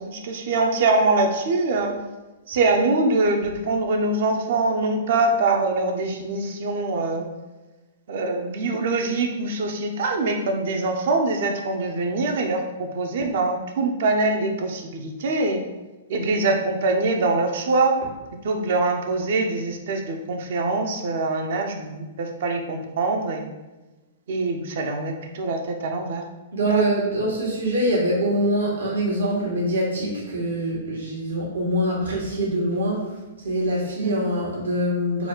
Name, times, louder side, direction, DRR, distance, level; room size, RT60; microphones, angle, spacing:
voice 1, 0.0-1.9 2.5-7.3 8.1-15.6 16.1-17.9 18.4-23.5 24.3-26.2 26.7-26.8 34.0-34.2, right 3 dB, 65° right, 3 dB, 0.7 m, -23 dB
voice 2, 26.5-33.1 33.4-35.3, right 1 dB, 80° right, -5 dB, 1.3 m, -24 dB
4.1 x 2.3 x 4.4 m, 1.1 s
hypercardioid pair, 125°, 0 cm